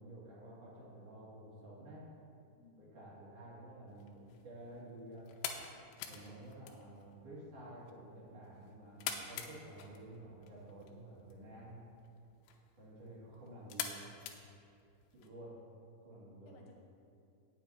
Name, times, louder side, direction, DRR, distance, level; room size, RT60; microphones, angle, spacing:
voice 1, 0.0-2.0 2.8-5.3 6.0-11.9 12.8-14.0 15.1-15.6 16.0-16.5, right 1 dB, 40° right, -8 dB, 3.1 m, -52 dB
voice 2, 2.5-2.8 11.5-12.0 16.5-16.8, left 4 dB, 70° left, -1 dB, 3.0 m, -63 dB
sound 1, 3.9-15.3, left 8 dB, 85° left, 2.9 m, -48 dB
17.5 x 7.9 x 3.0 m, 2.5 s
omnidirectional pair, 5.2 m